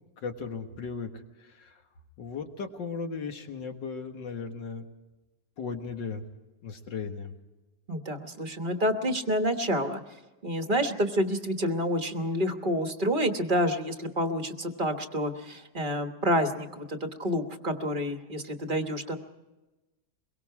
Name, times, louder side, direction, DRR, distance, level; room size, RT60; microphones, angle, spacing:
voice 1, 0.2-1.1 1.5-1.8 2.2-4.9 5.6-6.2 6.6-7.3, left 5 dB, 70° left, 5 dB, 2.3 m, -36 dB
voice 2, 7.9-19.2, equal, 30° right, 6 dB, 1.2 m, -28 dB
23.5 x 22.5 x 4.8 m, 1.1 s
omnidirectional pair, 2.1 m